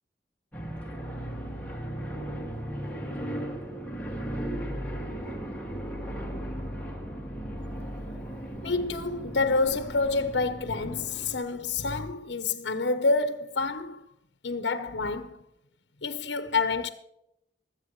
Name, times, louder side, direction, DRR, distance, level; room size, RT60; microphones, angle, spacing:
sound 1, 0.5-11.4, equal, 10° left, 2.3 m, -36 dB
voice 1, 8.6-14.0 14.4-15.4 16.0-16.9, left 3 dB, 85° left, 1.0 m, -28 dB
23.0 x 8.3 x 3.2 m
head